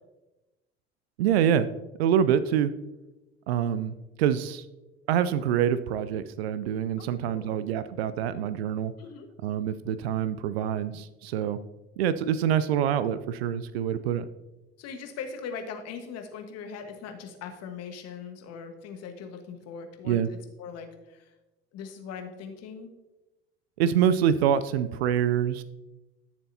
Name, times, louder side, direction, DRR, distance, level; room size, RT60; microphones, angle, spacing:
voice 1, 1.2-1.7 2.0-2.7 3.5-4.7 5.1-8.9 9.4-11.6 12.0-14.3 20.0-20.3 23.8-25.6, right 9 dB, 80° right, 14 dB, 0.5 m, -26 dB
voice 2, 7.0-7.5 9.0-9.3 14.8-21.3 21.7-22.9, left 6 dB, 55° left, 6 dB, 1.5 m, -40 dB
13.5 x 7.0 x 2.8 m, 1.0 s
hypercardioid pair, 65°, 31 cm